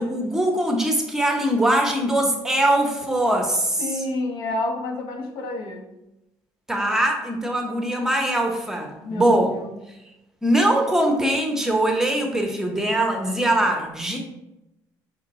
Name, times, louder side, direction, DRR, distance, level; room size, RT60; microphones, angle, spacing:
voice 1, 0.0-3.9 6.7-9.6 10.4-14.2, right 1 dB, 5° right, 1 dB, 0.7 m, -22 dB
voice 2, 3.8-5.9 9.0-9.3 9.5-9.8, left 2 dB, 85° left, 3 dB, 0.8 m, -29 dB
5.3 x 2.2 x 3.8 m, 0.91 s
cardioid pair, 135°, 8 cm